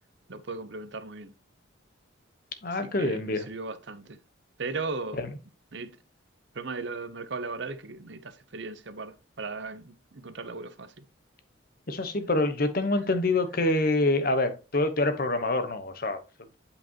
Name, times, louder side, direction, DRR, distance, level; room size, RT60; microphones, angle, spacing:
voice 1, 0.3-1.3 2.6-4.2 4.6-5.2 5.7-5.9 6.5-11.0, right 3 dB, 60° right, 0.7 m, -37 dB
voice 2, 2.6-3.5 5.2-5.3 11.9-16.2, left 2 dB, 45° left, 1.0 m, -26 dB
8.4 x 5.0 x 2.9 m
head